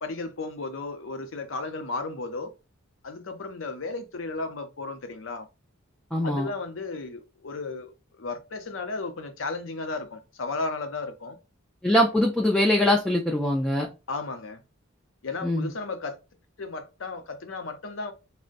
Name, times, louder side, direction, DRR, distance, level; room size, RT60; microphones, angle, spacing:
voice 1, 0.0-2.5 3.0-5.5 6.2-11.4 14.1-14.6 15.2-16.2 16.6-18.1, left 3 dB, 65° left, 0.6 m, -34 dB
voice 2, 6.1-6.5 11.8-13.9 15.4-15.7, left 1 dB, 5° left, 0.4 m, -22 dB
3.7 x 2.1 x 2.5 m
head